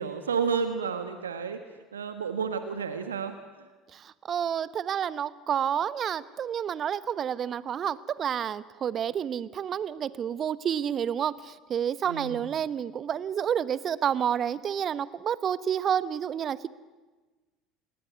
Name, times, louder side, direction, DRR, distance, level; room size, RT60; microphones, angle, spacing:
voice 1, 0.0-1.6 1.9-3.3 12.1-12.5, right 6 dB, 75° right, 9 dB, 1.5 m, -31 dB
voice 2, 4.3-16.7, right 8 dB, 40° right, 17 dB, 1.1 m, -29 dB
28.5 x 21.0 x 9.5 m, 1.2 s
figure-of-eight pair, 65°, 0 cm